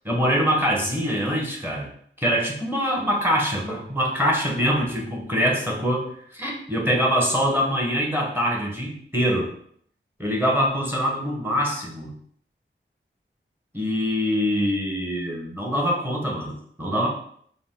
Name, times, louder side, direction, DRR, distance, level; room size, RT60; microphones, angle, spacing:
voice 1, 0.0-1.9 2.2-9.5 10.2-12.1 13.7-17.1, equal, 10° right, -2 dB, 1.3 m, -24 dB
4.9 x 2.2 x 3.8 m, 0.63 s
wide cardioid pair, 45°, 21 cm